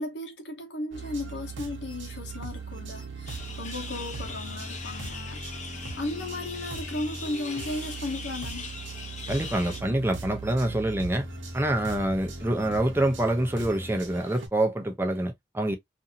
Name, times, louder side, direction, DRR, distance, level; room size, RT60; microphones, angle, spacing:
voice 1, 0.0-5.4 6.0-8.7, left 2 dB, 65° left, 1.0 m, -35 dB
sound 1, 0.9-14.5, right 3 dB, 85° right, 0.9 m, -39 dB
sound 2, 3.3-9.8, left 4 dB, 40° left, 0.7 m, -41 dB
voice 2, 9.3-11.3 11.5-15.7, right 1 dB, 10° right, 0.6 m, -26 dB
2.7 x 2.6 x 2.6 m
head